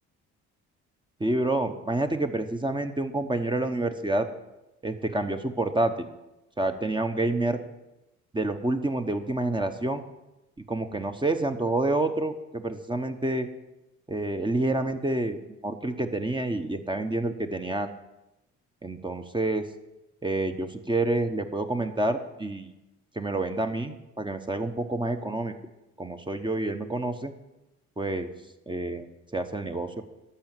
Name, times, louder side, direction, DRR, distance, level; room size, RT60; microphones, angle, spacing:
voice 1, 1.2-4.3 4.8-6.1 6.6-7.6 8.3-10.0 10.7-13.5 14.1-17.9 18.8-19.7 20.2-22.7 23.1-25.5 26.0-27.3 28.0-28.3 28.7-30.0, right 2 dB, 15° right, 6 dB, 1.0 m, -28 dB
12.5 x 5.7 x 9.0 m, 0.96 s
cardioid pair, 90°, 30 cm